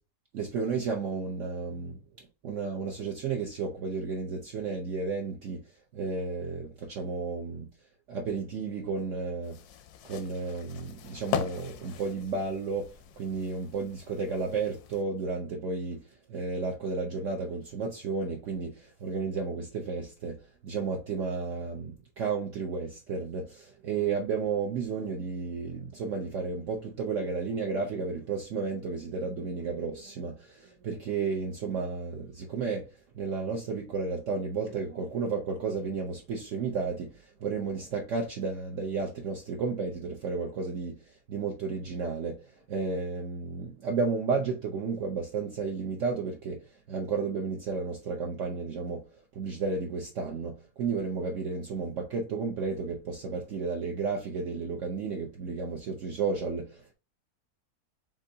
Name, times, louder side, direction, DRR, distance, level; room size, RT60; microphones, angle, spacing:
voice 1, 0.3-5.6 5.9-7.7 8.1-9.6 10.0-12.9 13.2-20.4 20.6-32.9 33.1-42.4 42.7-49.1 49.3-56.9, right 4 dB, 60° right, 0.9 m, -32 dB
sound 1, 9.4-15.0, left 9 dB, 80° left, 1.1 m, -39 dB
7.2 x 2.6 x 2.7 m
omnidirectional pair, 1.6 m